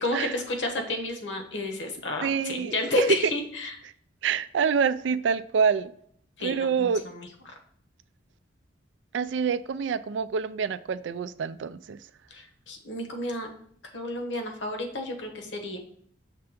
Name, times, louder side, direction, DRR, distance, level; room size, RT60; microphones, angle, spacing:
voice 1, 0.0-3.8 6.4-7.3 12.3-13.5 13.9-15.8, left 1 dB, 70° left, 3 dB, 1.2 m, -31 dB
voice 2, 2.2-2.7 4.2-5.9 6.4-7.0 9.1-12.0, right 6 dB, 65° right, 13 dB, 0.3 m, -26 dB
6.6 x 3.4 x 5.1 m, 0.64 s
head